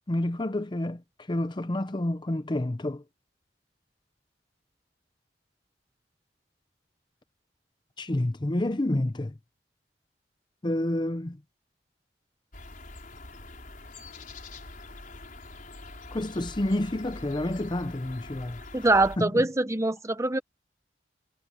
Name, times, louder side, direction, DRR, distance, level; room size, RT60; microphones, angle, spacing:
voice 1, 0.1-1.0 1.3-3.0 8.0-9.4 10.6-11.4 16.1-18.6 19.2-19.5, left 1 dB, 25° left, 0.7 m, -29 dB
sound 1, 12.5-19.2, left 2 dB, 50° left, 5.5 m, -44 dB
voice 2, 18.7-20.4, right 2 dB, 15° right, 0.9 m, -24 dB
head